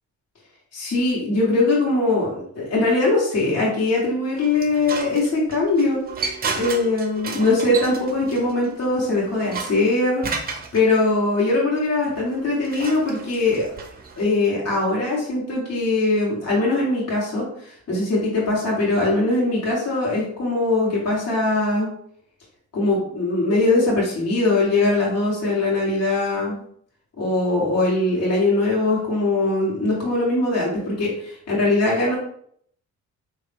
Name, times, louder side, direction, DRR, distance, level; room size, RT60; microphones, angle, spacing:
voice 1, 0.7-6.0 6.5-10.2 10.7-13.7 14.2-21.9 22.7-26.6 27.2-32.2, left 2 dB, 55° left, -5 dB, 1.8 m, -21 dB
sound 1, 4.3-10.8 12.1-14.5, right 5 dB, 30° right, 0.7 m, -33 dB
4.0 x 3.1 x 3.6 m, 0.66 s
cardioid pair, 90°, 30 cm